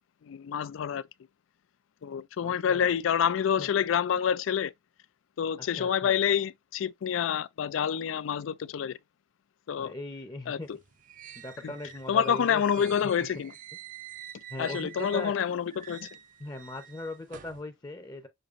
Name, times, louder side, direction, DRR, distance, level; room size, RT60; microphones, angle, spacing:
voice 1, 0.2-1.0 2.0-4.7 5.4-9.0 9.7-9.9 10.5-10.6 11.6-11.7 12.1-13.5 14.6-16.1, left 8 dB, 75° left, 0.4 m, -27 dB
voice 2, 2.4-2.9 3.6-3.7 5.7-6.2 9.7-10.7 11.4-13.1 14.5-15.4 16.4-18.3, left 1 dB, 20° left, 0.7 m, -39 dB
sound 1, 10.6-15.4 15.7-17.6, right 10 dB, 45° right, 0.5 m, -47 dB
6.6 x 2.8 x 2.5 m
head